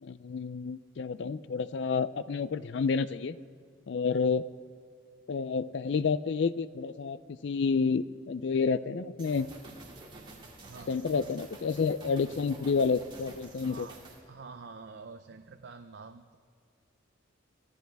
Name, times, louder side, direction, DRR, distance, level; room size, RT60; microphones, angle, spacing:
voice 1, 0.0-3.4 3.9-4.5 5.3-7.2 7.4-9.5 10.9-13.9, left 5 dB, 60° left, 16 dB, 0.4 m, -29 dB
sound 1, 9.2-14.2, right 2 dB, 25° right, 2.5 m, -50 dB
voice 2, 10.7-11.3 13.6-14.0 14.3-16.4, right 4 dB, 55° right, 8 dB, 0.5 m, -47 dB
24.0 x 13.5 x 3.5 m, 2.3 s
head